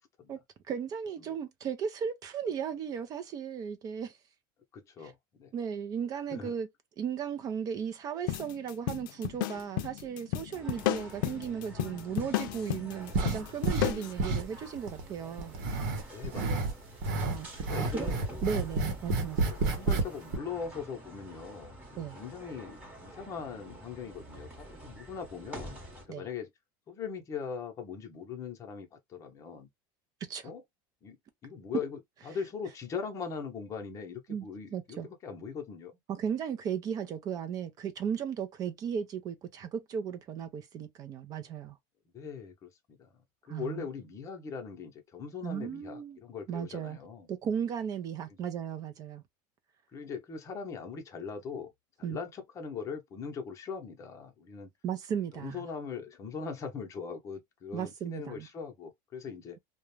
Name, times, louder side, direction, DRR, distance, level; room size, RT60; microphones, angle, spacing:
voice 1, 0.7-4.2 5.0-5.1 5.5-6.7 7.0-15.5 17.3-18.1 18.4-19.7 22.0-22.2 26.1-26.3 30.3-30.5 34.3-34.5 34.7-35.1 36.1-41.8 43.5-43.9 45.4-46.2 46.5-47.0 47.3-49.2 52.0-52.2 54.8-55.6 57.7-58.5, right 7 dB, 35° right, 0.5 m, -36 dB
voice 2, 4.7-5.5 6.3-6.5 16.1-16.9 17.7-18.3 19.5-25.8 26.1-26.5 26.9-29.7 30.4-30.6 31.0-31.2 31.4-32.0 32.3-35.9 42.1-43.1 43.5-47.3 49.9-51.7 52.0-54.7 55.3-59.6, left 6 dB, 30° left, 0.7 m, -40 dB
sound 1, 8.3-14.1, left 13 dB, 85° left, 0.4 m, -33 dB
sound 2, 10.5-26.1, right 1 dB, 15° right, 1.0 m, -48 dB
sound 3, 13.1-13.9 14.2-15.0 15.4-16.7 17.0-20.0 20.3-20.4, right 3 dB, 80° right, 0.9 m, -29 dB
2.4 x 2.1 x 3.1 m
supercardioid pair, 145°, 11 cm